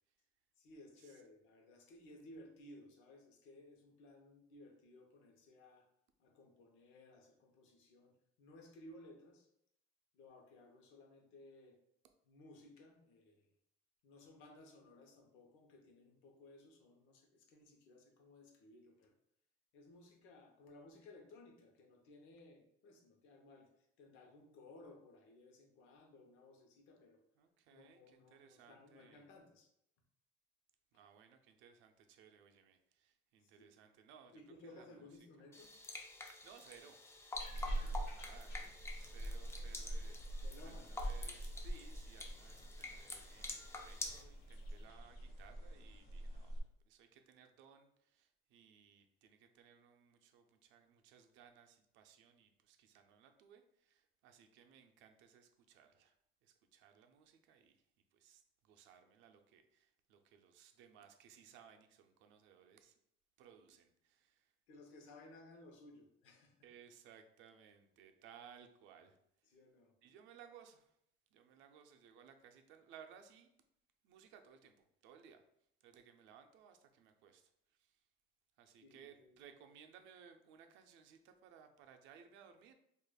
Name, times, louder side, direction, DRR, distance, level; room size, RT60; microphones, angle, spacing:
voice 1, 0.6-5.9 6.2-9.5 10.1-11.8 12.2-13.5 14.0-19.1 19.7-27.2 27.7-29.7 33.4-33.8 34.3-35.7 37.5-38.1 40.4-41.0 64.7-66.6 69.5-70.0 78.8-79.4, left 2 dB, 85° left, 3 dB, 0.8 m, -59 dB
voice 2, 27.4-29.2 30.9-34.4 34.7-34.9 36.2-37.0 37.5-46.6 46.9-56.1 56.4-57.8 58.1-63.0 63.4-64.5 66.6-69.2 70.0-71.0 71.3-73.5 74.0-74.8 75.0-75.4 75.8-78.0 78.6-82.7, right 7 dB, 75° right, 6 dB, 0.5 m, -62 dB
sound 1, 35.5-44.2, left 2 dB, 15° left, 0.4 m, -49 dB
sound 2, 37.3-46.6, right 1 dB, 50° left, 1.1 m, -45 dB
4.8 x 2.5 x 2.3 m, 0.75 s
cardioid pair, 135°, 19 cm